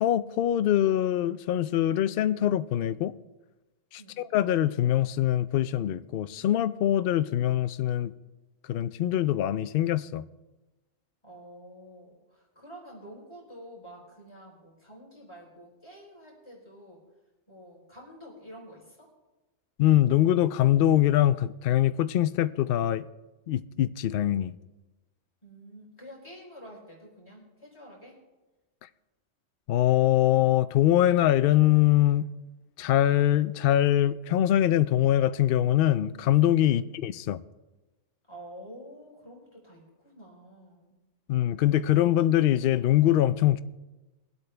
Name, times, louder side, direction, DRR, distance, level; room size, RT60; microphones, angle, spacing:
voice 1, 0.0-3.1 3.9-4.0 4.3-8.1 8.7-10.2 19.8-23.0 23.5-24.5 29.7-32.2 32.8-37.4 41.3-43.6, left 12 dB, 65° left, 0.6 m, -23 dB
voice 2, 11.2-17.0 17.5-19.1 25.4-28.2 36.6-36.9 38.3-41.0, equal, 20° left, 3.9 m, -48 dB
22.5 x 8.2 x 3.4 m
omnidirectional pair, 1.3 m